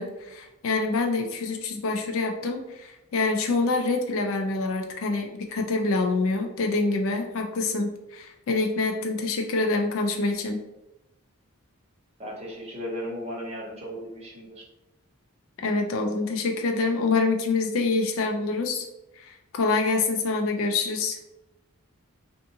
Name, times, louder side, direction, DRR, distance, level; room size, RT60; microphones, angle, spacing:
voice 1, 0.0-10.6 15.6-18.9 19.1-21.2, left 3 dB, 65° left, 3 dB, 0.4 m, -26 dB
voice 2, 12.2-14.6, equal, 30° right, -3 dB, 0.7 m, -36 dB
2.6 x 2.5 x 2.6 m, 0.95 s
head